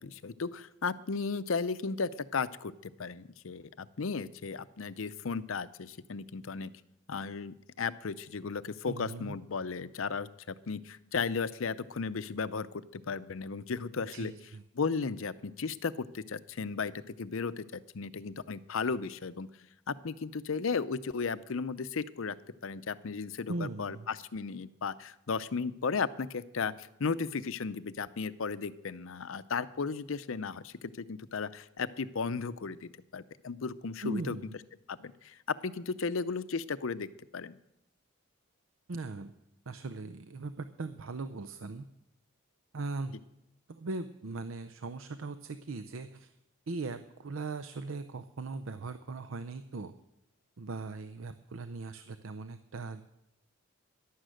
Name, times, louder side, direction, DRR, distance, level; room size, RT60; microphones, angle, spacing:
voice 1, 0.0-6.7 7.1-12.7 12.9-14.3 14.8-16.9 17.2-19.5 19.9-22.4 22.6-34.4 34.9-37.6, left 5 dB, 75° left, 15 dB, 0.6 m, -35 dB
voice 2, 8.8-9.4 14.1-14.6 23.5-24.1 34.0-34.6 38.9-39.3 39.7-41.9 42.7-43.1 43.7-46.3 46.7-49.9 50.6-53.1, right 3 dB, 75° right, 11 dB, 0.6 m, -39 dB
11.5 x 11.5 x 7.7 m, 0.85 s
head